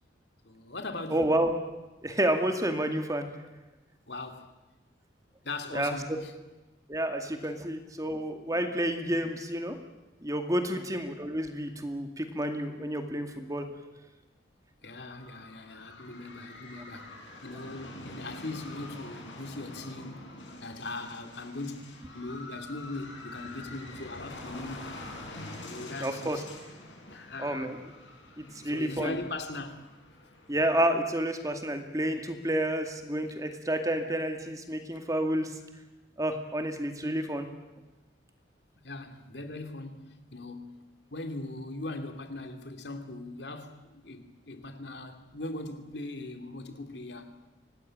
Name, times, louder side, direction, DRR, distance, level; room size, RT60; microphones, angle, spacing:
voice 1, 0.4-1.2 4.1-4.5 5.4-6.3 8.5-8.6 10.6-10.7 14.8-20.3 20.6-25.0 25.7-26.5 27.1-27.7 28.5-29.9 38.8-40.8 41.1-47.3, left 2 dB, 60° left, 2.7 m, -40 dB
voice 2, 1.1-1.5 2.0-3.3 5.7-5.9 6.9-9.8 10.2-13.7 26.0-26.4 27.4-27.8 28.4-29.2 30.5-35.5 36.2-37.5, right 1 dB, 20° right, 2.2 m, -30 dB
sound 1, 14.8-31.4, left 2 dB, 80° left, 6.2 m, -46 dB
25.5 x 19.0 x 8.8 m
head